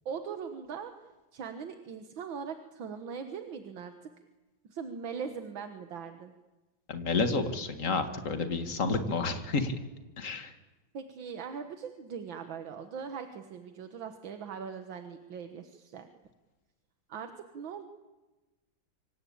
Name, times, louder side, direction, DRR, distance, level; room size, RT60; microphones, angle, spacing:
voice 1, 0.1-0.9 1.3-4.1 4.7-6.3 10.9-16.1 17.1-17.8, right 6 dB, 80° right, 7 dB, 2.1 m, -40 dB
voice 2, 6.9-9.7 10.2-10.5, left 3 dB, 40° left, 7 dB, 2.3 m, -30 dB
25.5 x 25.5 x 8.6 m, 1.2 s
omnidirectional pair, 2.1 m